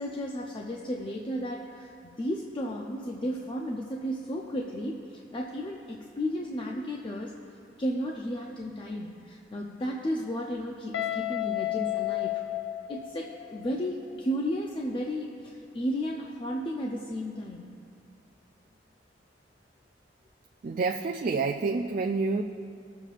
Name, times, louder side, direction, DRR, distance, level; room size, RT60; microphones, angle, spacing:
voice 1, 0.0-7.3 7.8-12.4 12.9-17.7, equal, 30° left, 0 dB, 0.5 m, -33 dB
Guitar, 10.9-13.8, left 15 dB, 90° left, 0.4 m, -32 dB
voice 2, 20.6-22.4, right 4 dB, 45° right, 4 dB, 0.3 m, -28 dB
20.0 x 7.0 x 2.5 m, 2.5 s
head